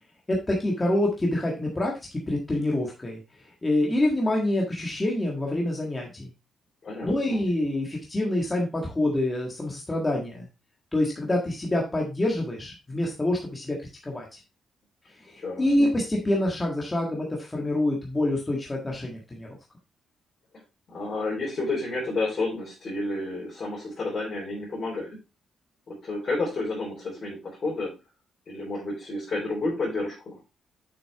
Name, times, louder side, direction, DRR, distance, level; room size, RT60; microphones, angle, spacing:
voice 1, 0.3-3.2 3.6-6.3 7.0-10.5 10.9-13.8 14.0-14.2 15.2-19.5, left 1 dB, 15° left, -1 dB, 1.6 m, -26 dB
voice 2, 6.8-7.4 15.4-15.9 20.9-25.2 25.9-27.9 28.5-30.4, left 2 dB, 35° left, -6 dB, 3.6 m, -31 dB
7.2 x 6.1 x 3.4 m, 0.27 s
wide cardioid pair, 175°, 0 cm